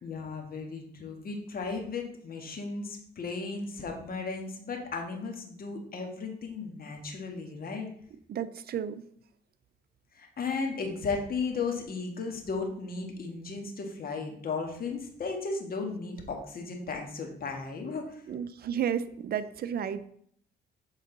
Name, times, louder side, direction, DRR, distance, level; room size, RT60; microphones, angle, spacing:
voice 1, 0.0-7.9 10.1-18.2, left 4 dB, 50° left, 2 dB, 1.5 m, -35 dB
voice 2, 8.3-9.0 18.3-20.1, right 8 dB, 50° right, 13 dB, 0.5 m, -32 dB
7.5 x 3.9 x 3.9 m, 0.66 s
cardioid pair, 90°, 20 cm